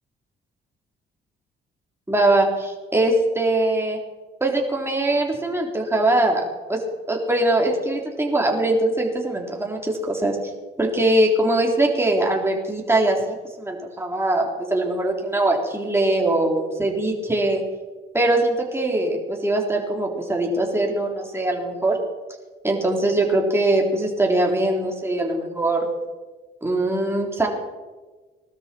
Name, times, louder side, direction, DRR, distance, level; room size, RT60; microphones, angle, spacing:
voice 1, 2.1-4.0 4.4-6.4 6.7-6.8 7.1-10.4 10.8-17.6 18.1-22.0 22.6-25.9 26.6-27.5, right 2 dB, 10° right, 0 dB, 3.5 m, -22 dB
20.5 x 12.5 x 4.5 m, 1.3 s
cardioid pair, 90°, 20 cm